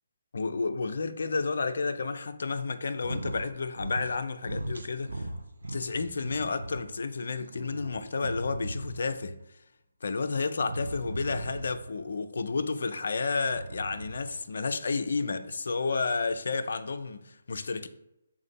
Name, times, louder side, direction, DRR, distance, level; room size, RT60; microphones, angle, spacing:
voice 1, 0.3-5.3 5.6-9.4 10.0-17.9, left 4 dB, 60° left, 0.3 m, -31 dB
sound 1, 2.9-3.5 3.7-4.2 4.4-6.8 7.2-9.2 10.5-11.9 13.4-14.4, right 1 dB, 75° right, 0.5 m, -38 dB
3.6 x 2.7 x 4.2 m
figure-of-eight pair, 140°, 0 cm